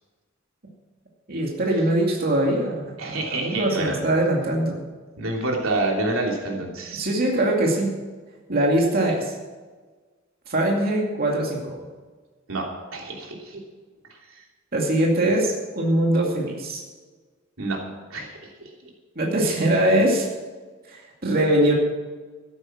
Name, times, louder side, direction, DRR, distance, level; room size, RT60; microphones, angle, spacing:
voice 1, 1.3-4.8 6.9-7.9 8.5-9.3 10.5-11.9 14.7-16.8 19.2-20.3 20.9-21.7, right 1 dB, 45° right, -1 dB, 2.4 m, -22 dB
voice 2, 3.0-4.0 5.2-7.1 12.5-13.6 17.6-17.8 18.1-18.3, right 2 dB, 85° right, 0 dB, 3.0 m, -27 dB
13.5 x 11.0 x 6.0 m, 1.4 s
head